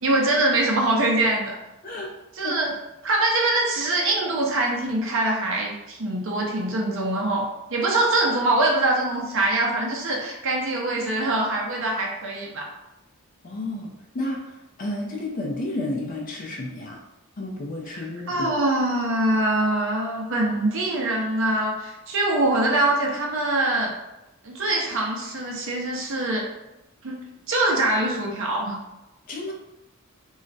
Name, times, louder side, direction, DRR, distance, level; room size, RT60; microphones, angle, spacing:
voice 1, 0.0-1.5 2.4-2.7 3.0-12.7 17.9-23.9 24.4-26.5 27.0-27.2 27.5-28.8, right 2 dB, 65° right, -1 dB, 0.6 m, -23 dB
voice 2, 13.4-17.0 17.4-18.6 29.3-29.5, left 2 dB, 40° left, -2 dB, 0.4 m, -31 dB
2.3 x 2.1 x 3.9 m, 0.96 s
head